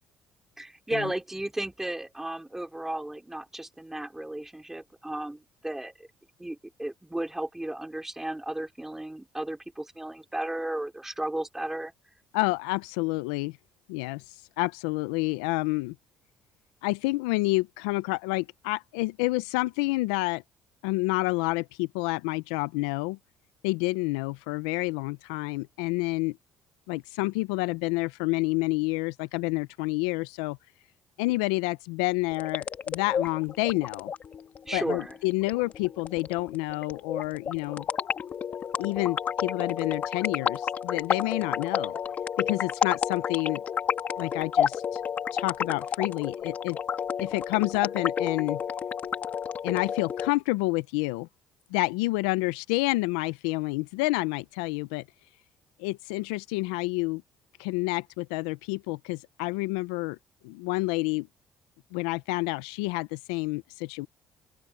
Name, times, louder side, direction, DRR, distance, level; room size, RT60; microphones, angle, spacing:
voice 1, 0.6-6.1 6.4-11.9 34.6-35.2, right 1 dB, 10° right, 3.8 m, -34 dB
voice 2, 12.3-13.6 13.9-14.2 14.6-15.9 16.8-20.4 20.8-23.2 23.6-26.4 26.9-30.6 31.2-34.1 34.7-37.8 38.8-42.0 42.4-43.6 44.2-45.0 45.3-46.8 47.2-48.6 49.6-51.3 51.7-55.0 55.8-57.2 57.6-60.2 60.4-61.3 61.9-64.1, left 23 dB, 90° left, 0.6 m, -29 dB
sound 1, 32.3-50.3, left 8 dB, 50° left, 1.6 m, -31 dB
open air
supercardioid pair, 65°, 3 cm